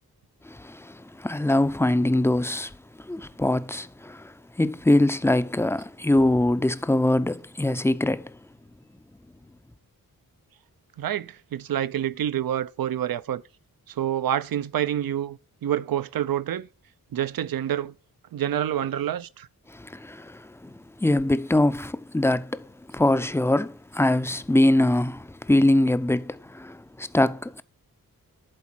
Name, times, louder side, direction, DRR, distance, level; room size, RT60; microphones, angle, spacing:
voice 1, 0.5-2.7 3.0-8.3 19.7-22.6 22.9-27.6, left 1 dB, 5° left, 0.5 m, -23 dB
voice 2, 11.0-13.4 13.9-16.7 17.1-17.9 18.3-19.5, right 11 dB, 70° right, 0.6 m, -27 dB
11.0 x 4.1 x 6.0 m
cardioid pair, 70°, 37 cm